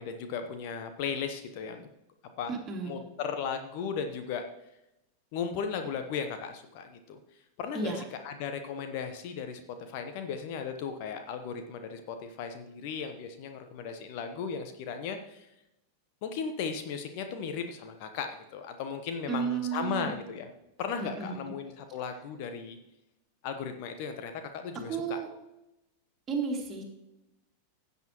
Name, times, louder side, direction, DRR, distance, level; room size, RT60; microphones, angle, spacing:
voice 1, 0.0-1.8 2.4-2.5 2.8-4.4 5.3-7.2 7.6-9.6 9.9-15.5 16.2-20.5 20.8-22.8 23.4-25.2, left 6 dB, 45° left, 7 dB, 1.1 m, -36 dB
voice 2, 2.5-3.0 7.7-8.0 19.3-20.1 21.2-21.3 24.9-25.3 26.3-26.8, right 6 dB, 25° right, 1 dB, 2.6 m, -32 dB
16.5 x 8.3 x 3.1 m, 0.88 s
figure-of-eight pair, 90°, 0 cm